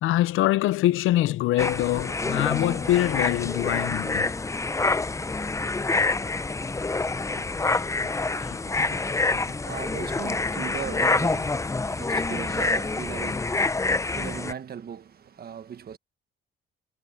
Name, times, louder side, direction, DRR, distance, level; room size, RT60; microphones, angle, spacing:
voice 1, 0.0-4.3 7.7-8.6, left 15 dB, 90° left, 0.6 m, -24 dB
sound 1, 1.6-14.5, left 3 dB, 15° left, 0.6 m, -27 dB
voice 2, 8.6-16.0, right 8 dB, 50° right, 1.4 m, -39 dB
cardioid pair, 90°, 20 cm